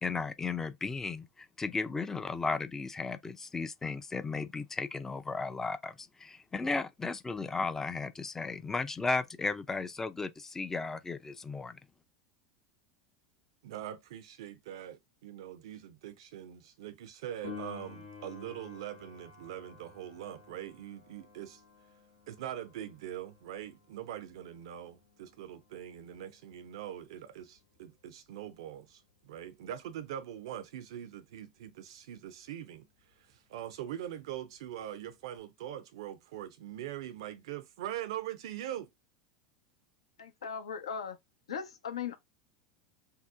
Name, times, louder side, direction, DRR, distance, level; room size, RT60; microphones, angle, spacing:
voice 1, 0.0-11.8, left 4 dB, 15° left, 0.4 m, -35 dB
voice 2, 13.6-21.6 22.3-32.9 33.2-38.9, right 11 dB, 60° right, 0.5 m, -42 dB
Piano, 17.4-27.8 35.4-35.5, left 4 dB, 90° left, 1.1 m, -52 dB
voice 3, 40.2-41.2 41.5-42.1, left 7 dB, 75° left, 0.6 m, -38 dB
2.7 x 2.0 x 3.5 m
figure-of-eight pair, 80°, 3 cm